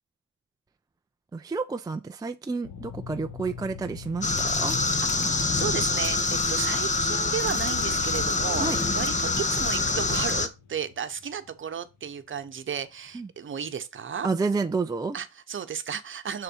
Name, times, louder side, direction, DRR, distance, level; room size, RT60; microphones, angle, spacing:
voice 1, 1.3-4.8 8.6-8.8 13.1-13.3 14.2-15.2, right 4 dB, 15° right, 0.4 m, -30 dB
sound 1, 2.6-13.6, left 6 dB, 80° left, 1.6 m, -45 dB
sound 2, 4.2-10.5, left 3 dB, 25° left, 1.0 m, -25 dB
voice 2, 5.5-14.3 15.1-16.4, right 8 dB, 40° right, 1.0 m, -33 dB
6.7 x 4.2 x 5.4 m
cardioid pair, 90°, 30 cm